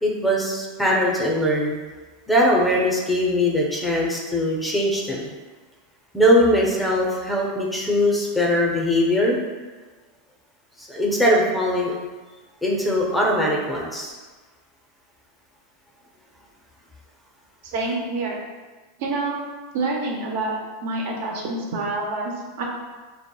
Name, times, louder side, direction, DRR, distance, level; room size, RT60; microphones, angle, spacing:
voice 1, 0.0-1.8 2.3-5.2 6.1-9.4 10.8-11.9 12.6-14.2, equal, 5° left, -2 dB, 0.4 m, -21 dB
voice 2, 17.7-18.4 19.0-19.4 19.7-20.5 20.8-22.6, right 3 dB, 70° right, -1 dB, 0.5 m, -27 dB
2.8 x 2.0 x 2.2 m, 1.3 s
hypercardioid pair, 115°, 0 cm